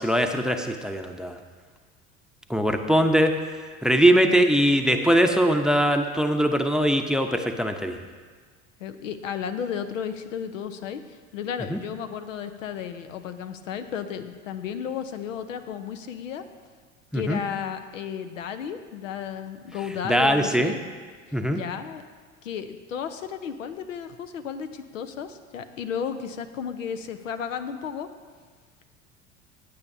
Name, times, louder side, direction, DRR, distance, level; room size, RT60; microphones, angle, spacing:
voice 1, 0.0-1.4 2.5-3.3 3.8-8.0 11.7-11.8 17.1-17.4 20.0-20.7 21.3-21.6, equal, ahead, 6 dB, 0.7 m, -21 dB
voice 2, 8.8-16.4 17.1-20.8 21.5-22.0 22.4-28.1, left 7 dB, 85° left, 9 dB, 0.7 m, -33 dB
16.0 x 8.5 x 2.7 m, 1.5 s
hypercardioid pair, 80°, 38 cm